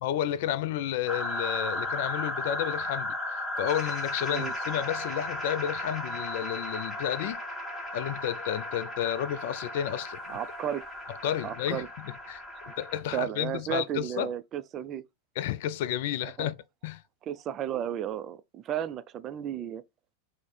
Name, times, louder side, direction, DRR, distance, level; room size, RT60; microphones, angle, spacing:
voice 1, 0.0-7.4 7.9-10.4 11.2-12.4 12.8-14.3 15.4-16.6 16.8-17.0, left 11 dB, 50° left, 0.3 m, -31 dB
sound 1, 1.1-13.0, left 1 dB, 5° left, 1.3 m, -35 dB
voice 2, 10.3-10.8 11.4-11.9 12.6-12.7 13.1-15.0 16.4-16.5 17.3-19.8, right 10 dB, 30° right, 0.3 m, -33 dB
4.6 x 2.1 x 4.0 m
figure-of-eight pair, 90°, 0 cm